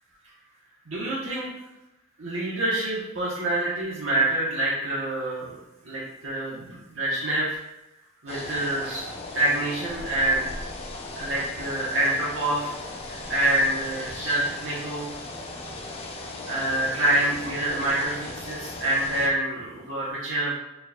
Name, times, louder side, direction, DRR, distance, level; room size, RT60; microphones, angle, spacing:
voice 1, 0.9-1.5 2.2-5.6 5.8-7.6 8.2-9.0 9.3-10.5 11.2-12.7 13.1-15.1 16.4-20.5, right 1 dB, 75° right, -8 dB, 1.0 m, -26 dB
sound 1, 8.3-19.3, left 2 dB, 30° left, 0.5 m, -37 dB
4.4 x 4.1 x 2.3 m, 0.93 s
head